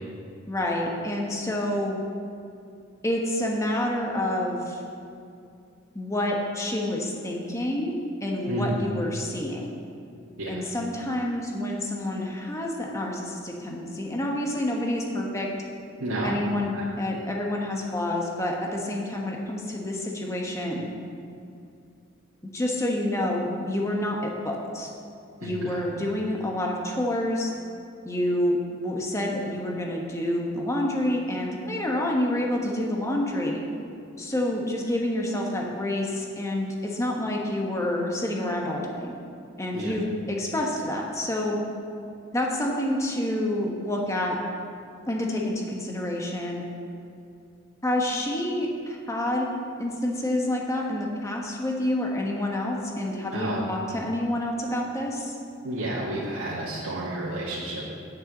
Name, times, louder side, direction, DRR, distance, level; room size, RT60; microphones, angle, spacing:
voice 1, 0.5-2.0 3.0-4.8 5.9-7.9 8.2-9.8 10.5-15.5 16.2-20.9 22.5-24.2 24.4-24.9 25.4-27.5 28.0-33.6 34.2-39.1 39.6-41.6 42.3-44.3 45.1-46.6 47.8-49.5 49.8-55.4, left 1 dB, 15° left, -1 dB, 1.2 m, -28 dB
voice 2, 8.5-8.8 10.4-10.6 16.0-16.3 16.7-16.8 25.4-25.8 39.7-39.9 53.3-53.6 55.6-57.8, right 1 dB, 85° right, -7 dB, 1.8 m, -30 dB
9.1 x 6.5 x 7.6 m, 2.5 s
head